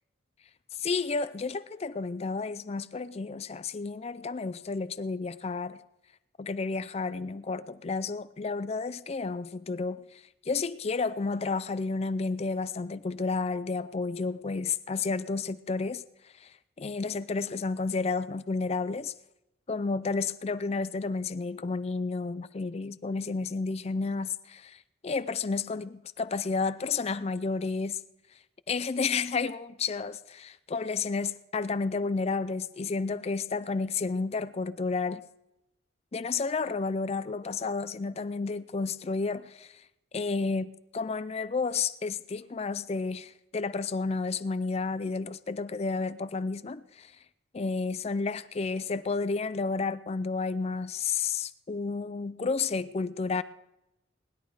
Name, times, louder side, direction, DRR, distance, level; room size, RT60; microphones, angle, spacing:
voice 1, 0.8-5.8 6.4-16.0 16.4-19.1 19.7-28.0 28.7-35.2 36.1-39.8 40.1-47.1 47.5-53.4, left 4 dB, 30° left, 0.4 m, -31 dB
19.0 x 11.0 x 4.7 m
head